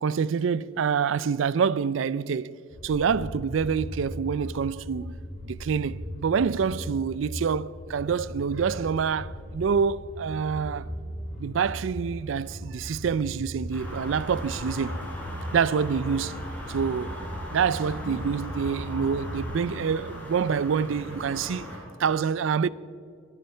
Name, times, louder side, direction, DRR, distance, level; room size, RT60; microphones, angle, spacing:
voice 1, 0.0-2.6 2.8-5.2 5.4-10.9 11.4-15.0 15.5-16.3 16.7-17.2 17.5-21.7 22.0-22.7, right 6 dB, 70° right, 0.4 m, -26 dB
sound 1, 2.7-19.4, equal, 35° left, 3.0 m, -38 dB
sound 2, 13.7-21.8, equal, 10° left, 3.9 m, -39 dB
22.5 x 11.0 x 4.4 m
head